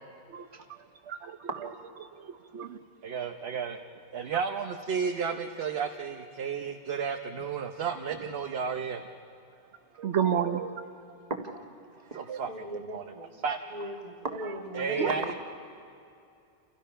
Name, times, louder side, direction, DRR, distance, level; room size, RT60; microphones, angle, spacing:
voice 1, 0.8-1.5 2.0-2.8 4.3-4.4 9.9-10.8 12.3-12.4 15.0-15.1, right 8 dB, 90° right, 7 dB, 1.2 m, -31 dB
voice 2, 3.0-3.8 4.1-9.0 12.1-13.0 13.4-13.6 14.8-15.3, right 6 dB, 65° right, 4 dB, 1.1 m, -32 dB
voice 3, 11.9-13.3 13.7-15.3, right 1 dB, 35° right, 2 dB, 1.9 m, -37 dB
29.0 x 28.5 x 5.7 m, 2.6 s
omnidirectional pair, 1.1 m